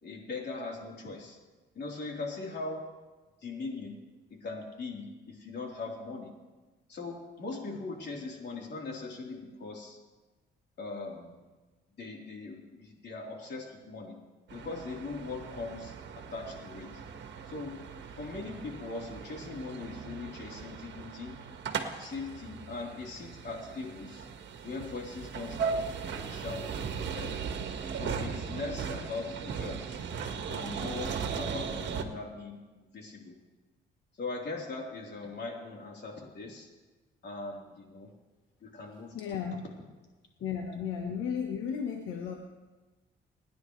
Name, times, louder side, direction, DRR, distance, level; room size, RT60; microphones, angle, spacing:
voice 1, 0.0-1.4 1.7-2.9 3.4-4.0 4.4-6.3 6.9-10.0 10.8-11.4 12.0-14.2 14.5-17.0 17.4-17.8 18.2-21.4 22.0-24.3 24.6-26.0 26.2-27.4 27.9-30.0 30.5-33.3 34.2-36.7 37.2-38.1 38.6-39.4, left 3 dB, 60° left, -1 dB, 3.8 m, -40 dB
sound 1, 14.5-32.0, right 6 dB, 65° right, 1.5 m, -38 dB
voice 2, 39.1-39.6 40.4-42.4, left 7 dB, 90° left, 2 dB, 1.3 m, -34 dB
27.5 x 10.0 x 3.3 m, 1.2 s
cardioid pair, 90°, 20 cm